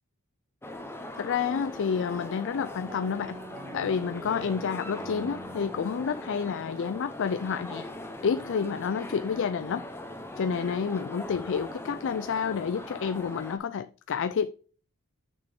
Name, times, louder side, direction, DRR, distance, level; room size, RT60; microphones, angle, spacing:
sound 1, 0.6-13.6, left 1 dB, 10° left, 0.9 m, -40 dB
voice 1, 1.2-3.4 3.7-7.9 8.2-9.9 10.4-14.5, left 6 dB, 55° left, 0.4 m, -29 dB
sound 2, 2.9-7.5, right 1 dB, 35° right, 1.2 m, -46 dB
6.6 x 6.1 x 3.6 m
head